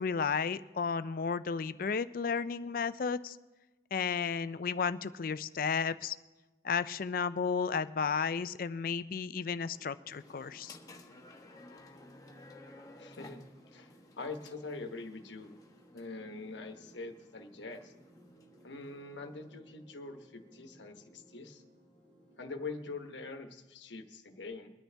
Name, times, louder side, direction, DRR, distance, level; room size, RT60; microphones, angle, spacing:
voice 1, 0.0-3.4 3.9-6.2 6.6-10.8, left 5 dB, 50° left, 14 dB, 0.4 m, -33 dB
sound 1, 9.7-23.4, right 1 dB, 45° right, 5.1 m, -62 dB
sound 2, 10.1-19.6, left 2 dB, 20° left, 1.1 m, -56 dB
voice 2, 13.0-15.6 15.9-17.9 18.6-21.6 22.4-24.7, left 3 dB, 70° left, 5 dB, 1.1 m, -44 dB
23.0 x 9.8 x 3.4 m, 1.2 s
head